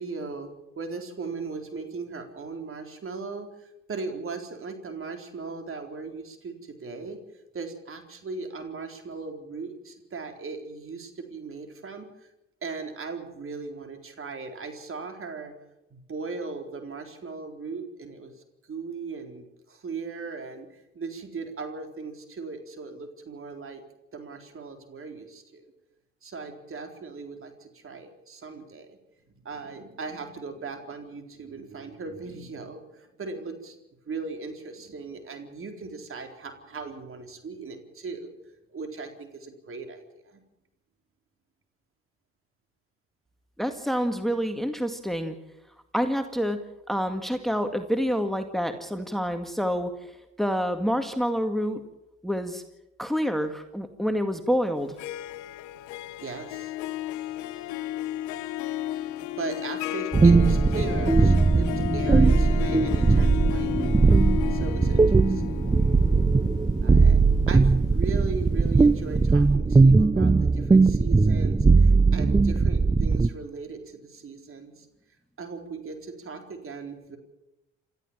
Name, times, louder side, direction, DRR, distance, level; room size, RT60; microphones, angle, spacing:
voice 1, 0.0-7.2 7.5-12.3 12.6-15.5 15.9-18.3 18.6-23.8 24.1-25.7 26.2-29.0 29.3-33.8 34.1-38.3 38.7-40.4 56.2-56.7 59.2-63.7 64.5-65.7 66.8-67.2 67.5-74.9 75.4-77.2, right 4 dB, 45° right, 5 dB, 4.1 m, -38 dB
voice 2, 43.6-45.4 45.9-46.6 46.9-51.8 52.2-52.6 53.0-55.0, equal, ahead, 7 dB, 2.0 m, -27 dB
Harp, 54.8-68.7, left 14 dB, 80° left, 1.0 m, -34 dB
sound 1, 60.1-73.3, right 4 dB, 15° right, 0.7 m, -19 dB
28.0 x 13.5 x 7.3 m, 0.94 s
hypercardioid pair, 55°, 29 cm